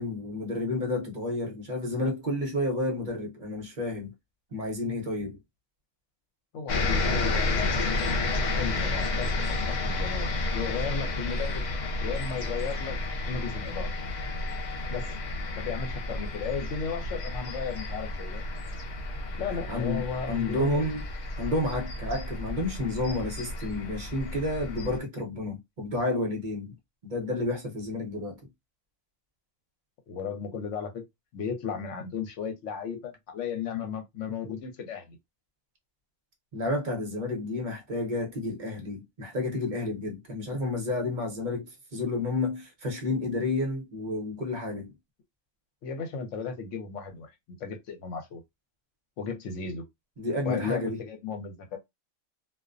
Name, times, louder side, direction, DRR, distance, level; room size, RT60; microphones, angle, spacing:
voice 1, 0.0-4.1 4.5-5.4 19.7-21.0 21.4-26.7 27.0-28.4 36.5-41.7 41.9-44.9 50.2-51.0, left 2 dB, 45° right, 0.8 m, -30 dB
voice 2, 6.5-7.6 8.5-11.6 12.0-13.0 13.3-13.9 14.9-15.1 15.6-18.4 19.4-20.9 30.1-31.0 31.3-35.2 45.8-47.3 47.6-48.4 49.2-49.8 50.4-51.8, left 6 dB, 70° left, 1.0 m, -35 dB
sound 1, 6.7-25.0, left 2 dB, 55° left, 0.5 m, -31 dB
2.3 x 2.1 x 2.5 m
omnidirectional pair, 1.4 m